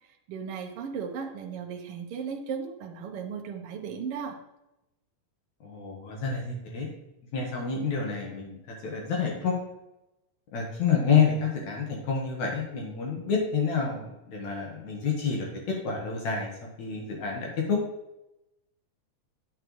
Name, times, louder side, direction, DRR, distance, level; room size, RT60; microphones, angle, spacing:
voice 1, 0.3-4.4, right 6 dB, 65° right, 2 dB, 1.5 m, -36 dB
voice 2, 5.6-6.9 7.3-9.5 10.5-16.5 16.8-17.8, left 6 dB, 65° left, -1 dB, 2.7 m, -28 dB
9.1 x 7.9 x 3.2 m, 0.92 s
omnidirectional pair, 3.7 m